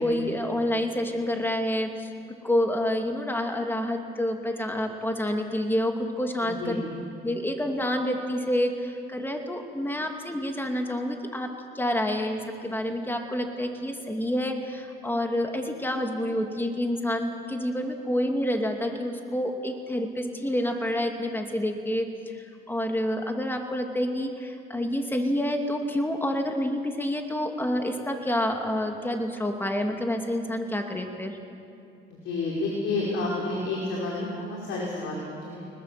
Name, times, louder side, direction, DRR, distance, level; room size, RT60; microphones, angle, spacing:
voice 1, 0.0-2.1 2.4-6.8 7.2-31.4, left 1 dB, 10° left, 3 dB, 2.7 m, -28 dB
voice 2, 6.4-6.8 32.2-35.6, left 2 dB, 85° left, -3 dB, 5.0 m, -30 dB
24.0 x 20.0 x 7.7 m, 2.6 s
cardioid pair, 90°, 20 cm